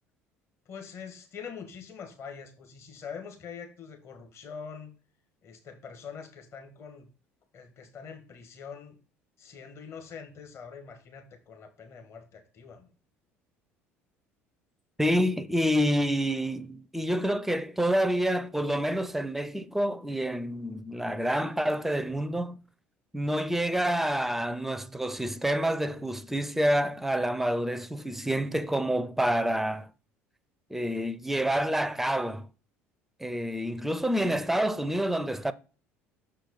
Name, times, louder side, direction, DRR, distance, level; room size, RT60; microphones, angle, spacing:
voice 1, 0.7-4.9 5.4-7.1 7.5-9.0 9.4-12.9, left 6 dB, 40° left, 1.3 m, -44 dB
voice 2, 15.0-22.6 23.1-29.9 30.7-32.5 33.2-35.5, equal, 5° right, 0.5 m, -28 dB
6.2 x 4.6 x 4.0 m
figure-of-eight pair, 60°, 7 cm